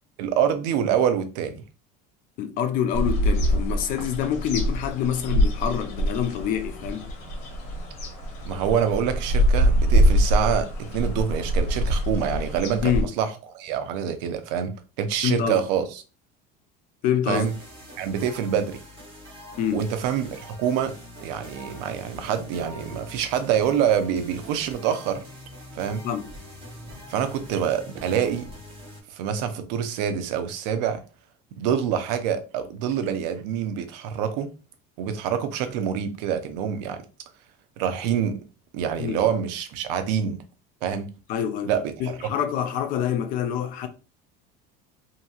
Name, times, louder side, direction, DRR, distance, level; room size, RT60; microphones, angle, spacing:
voice 1, 0.2-1.6 8.4-14.7 15.0-16.0 17.3-17.5 18.0-18.8 19.7-25.2 25.7-26.0 27.1-28.5 29.1-31.0 31.6-34.5 35.0-37.0 37.8-38.4 38.7-40.4 40.8-41.1 41.6-42.2, right 8 dB, 90° right, 0.6 m, -26 dB
voice 2, 2.4-7.1 12.8-13.1 15.2-15.6 17.0-17.5 19.6-19.8 26.0-26.3 39.0-39.2 41.3-41.7 42.0-43.9, left 9 dB, 40° left, 0.4 m, -26 dB
sound 1, 2.9-13.0, equal, 70° left, 1.1 m, -24 dB
sound 2, 17.3-29.0, equal, 25° right, 0.9 m, -44 dB
2.9 x 2.7 x 2.4 m
cardioid pair, 165°, 21 cm